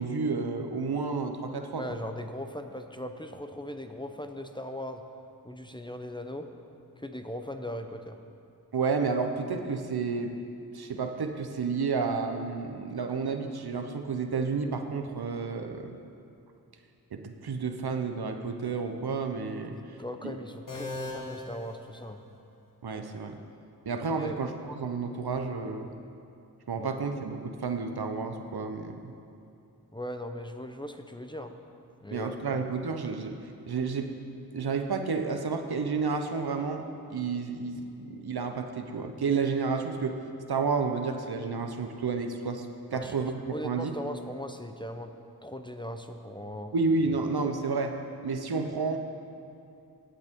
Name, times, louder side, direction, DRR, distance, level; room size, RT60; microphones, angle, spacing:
voice 1, 0.0-1.8 8.7-10.3 10.7-16.0 17.1-20.0 20.2-20.4 22.8-23.4 23.9-25.9 26.7-29.1 32.1-33.4 33.7-34.1 34.5-40.2 40.5-43.9 46.7-48.0 48.2-49.0, right 4 dB, 75° right, 6 dB, 0.8 m, -31 dB
voice 2, 1.8-5.0 5.4-6.5 7.0-8.2 19.7-22.2 24.2-24.4 26.8-26.9 29.9-31.5 32.0-32.6 42.9-45.1 45.4-46.7, equal, 10° left, 6 dB, 0.7 m, -39 dB
sound 1, 20.7-22.6, left 2 dB, 55° left, 1.8 m, -39 dB
16.5 x 7.8 x 3.6 m, 2.6 s
wide cardioid pair, 45°, 39 cm